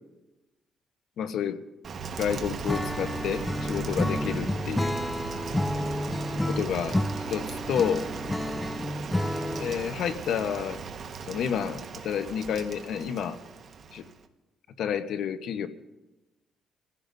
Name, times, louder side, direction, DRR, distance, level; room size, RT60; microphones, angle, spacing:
voice 1, 1.2-1.6 2.2-5.0 6.5-7.0 7.3-8.1 9.6-10.8 11.3-13.4 13.9-14.1 14.8-15.7, left 8 dB, 75° left, 10 dB, 1.0 m, -30 dB
Rain, 1.8-14.3, right 5 dB, 55° right, 1.3 m, -37 dB
Acoustic guitar / Strum, 2.7-9.9, left 1 dB, 10° left, 0.5 m, -30 dB
26.0 x 15.5 x 2.7 m, 1.0 s
cardioid pair, 90°, 0 cm